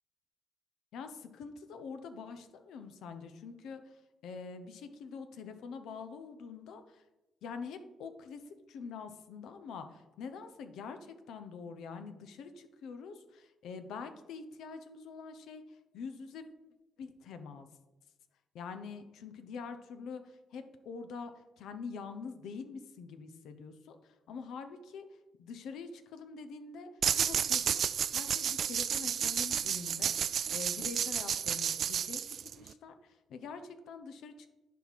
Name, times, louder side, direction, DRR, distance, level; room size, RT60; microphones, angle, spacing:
voice 1, 0.9-4.0 4.2-7.0 7.4-8.4 8.7-16.5 17.0-17.7 18.5-25.1 25.4-26.9 27.1-27.9 28.1-30.1 30.5-34.5, left 5 dB, 80° left, 9 dB, 0.7 m, -45 dB
sound 1, 27.0-32.7, right 8 dB, 60° right, 0.3 m, -31 dB
10.5 x 4.7 x 4.1 m, 1.0 s
cardioid pair, 90°, 0 cm